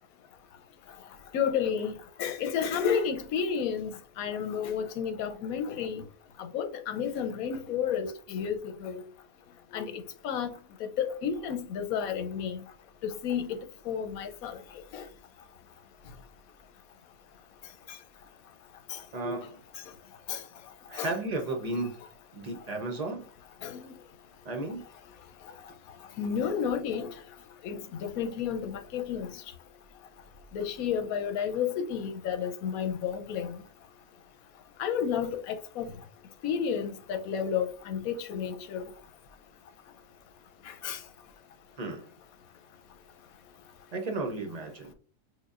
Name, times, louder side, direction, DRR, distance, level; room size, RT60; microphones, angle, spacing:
voice 1, 1.3-1.9 2.2-3.9 4.2-6.0 6.5-9.0 9.7-10.5 11.0-12.6 13.2-13.6 13.9-14.6 14.9-15.0 18.9-19.0 20.3-20.4 20.9-21.1 23.6-23.9 26.2-27.1 27.6-29.3 30.5-33.6 34.8-35.9 36.4-38.9 40.7-41.0, left 7 dB, 85° left, 1.1 m, -31 dB
voice 2, 19.1-19.6 20.9-22.0 22.3-23.3 24.4-24.8 41.8-42.0 43.9-44.9, right 2 dB, 45° right, 0.5 m, -34 dB
6.4 x 2.2 x 2.4 m
omnidirectional pair, 1.5 m